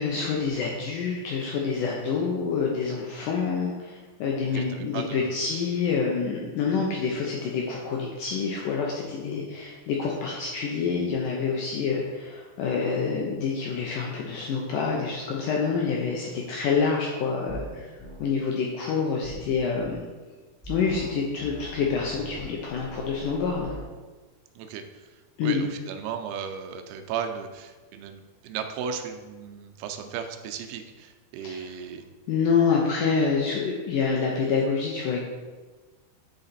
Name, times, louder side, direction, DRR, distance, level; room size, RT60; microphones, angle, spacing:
voice 1, 0.0-17.9 18.2-20.0 20.6-23.7 25.4-25.7 31.4-31.6 32.3-35.2, left 5 dB, 90° left, -2 dB, 1.8 m, -27 dB
voice 2, 4.4-5.5 24.6-32.0, right 7 dB, 85° right, 5 dB, 2.7 m, -36 dB
sound 1, 17.5-17.7 18.0-18.2 19.2-20.0 20.6-21.1 21.4-23.8, right 2 dB, 10° left, 0.7 m, -41 dB
9.7 x 3.9 x 4.2 m, 1.3 s
omnidirectional pair, 4.6 m